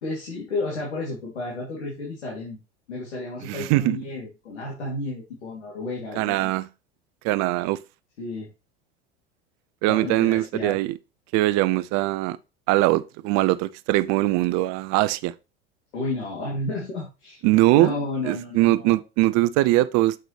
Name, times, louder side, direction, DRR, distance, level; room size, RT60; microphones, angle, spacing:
voice 1, 0.0-2.6 2.9-6.5 8.2-8.5 9.9-10.8 15.9-17.4 17.7-19.0, left 2 dB, 80° left, 3.2 m, -32 dB
voice 2, 3.5-4.0 6.2-6.7 7.2-7.8 9.8-11.0 11.3-12.4 12.7-15.3 17.4-17.9 18.2-20.2, right 17 dB, 50° right, 0.7 m, -21 dB
7.9 x 6.0 x 3.4 m
hypercardioid pair, 85°, 34 cm